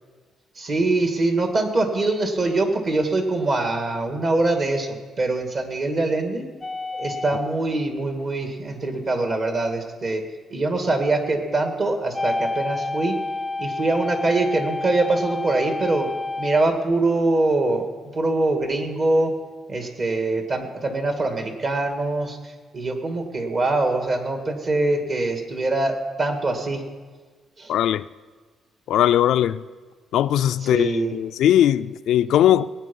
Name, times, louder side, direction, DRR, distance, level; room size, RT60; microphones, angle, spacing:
voice 1, 0.6-6.5 7.0-10.2 10.5-13.2 13.6-16.1 16.4-17.9 18.1-19.3 19.7-26.8 27.6-27.7 30.6-31.1, right 2 dB, 45° right, 2.0 m, -23 dB
sound 1, 6.6-7.4 12.1-16.6, left 2 dB, 10° left, 0.6 m, -29 dB
voice 2, 27.7-28.0 28.9-29.6 30.1-32.7, left 11 dB, 80° left, 0.3 m, -19 dB
19.5 x 9.2 x 5.4 m
cardioid pair, 115°, 0 cm